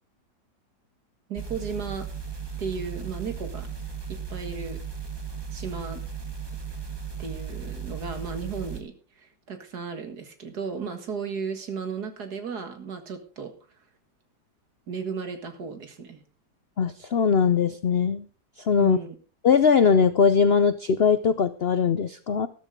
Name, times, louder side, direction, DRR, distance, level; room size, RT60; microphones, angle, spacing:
voice 1, 1.3-2.1 2.6-3.7 4.1-4.8 5.5-6.0 7.2-13.5 14.9-16.2 18.8-19.2, right 5 dB, 60° right, 7 dB, 2.2 m, -35 dB
sound 1, 1.4-8.8, right 6 dB, 15° right, 1.3 m, -36 dB
voice 2, 16.8-18.2 18.6-19.0 19.4-22.5, left 6 dB, 75° left, 12 dB, 0.5 m, -20 dB
13.5 x 12.0 x 3.7 m, 0.36 s
omnidirectional pair, 1.9 m